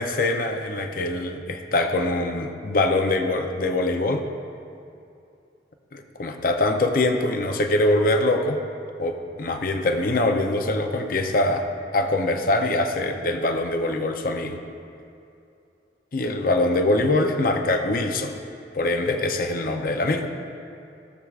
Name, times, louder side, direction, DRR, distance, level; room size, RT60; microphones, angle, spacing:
voice 1, 0.0-4.2 5.9-8.6 9.0-11.7 11.9-14.6 16.1-18.4 18.7-20.3, left 2 dB, 50° left, 5 dB, 0.6 m, -23 dB
15.5 x 7.3 x 2.4 m, 2.6 s
head